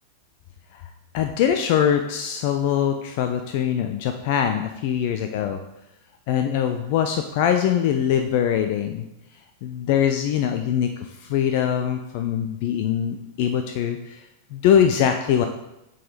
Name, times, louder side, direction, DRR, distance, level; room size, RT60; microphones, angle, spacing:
voice 1, 1.1-5.6 6.3-9.1 9.6-14.2 14.5-15.5, left 9 dB, 45° left, 6 dB, 0.4 m, -22 dB
6.3 x 4.0 x 4.1 m, 0.89 s
figure-of-eight pair, 90°, 0 cm